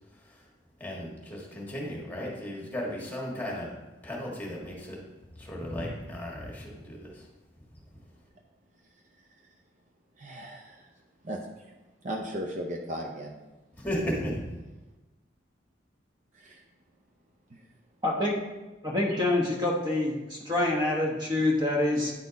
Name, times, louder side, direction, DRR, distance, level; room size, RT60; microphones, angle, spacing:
voice 1, 0.1-0.5 0.8-3.7 4.0-5.0 5.3-7.3 13.7-14.5, equal, 10° left, -3 dB, 1.4 m, -35 dB
voice 2, 10.2-10.9 11.2-11.7 12.0-13.3 16.3-16.6 17.5-17.6, equal, 40° right, 1 dB, 0.5 m, -37 dB
voice 3, 18.0-18.4 18.8-22.1, left 2 dB, 25° right, -1 dB, 1.0 m, -26 dB
9.4 x 4.2 x 4.0 m, 1.1 s
head